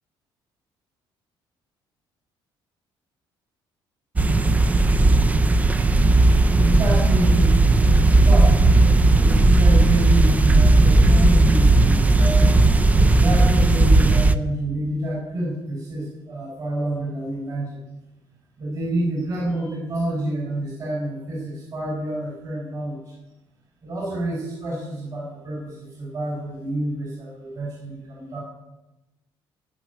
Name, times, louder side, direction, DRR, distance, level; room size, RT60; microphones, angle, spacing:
sound 1, 4.2-14.4, right 2 dB, 15° right, 0.5 m, -16 dB
voice 1, 6.5-7.8 8.3-8.6 9.1-12.6 12.9-17.8 18.6-23.2 23.8-28.4, right 1 dB, 40° right, -3 dB, 4.8 m, -28 dB
16.5 x 5.8 x 9.4 m, 1.0 s
cardioid pair, 120°, 9 cm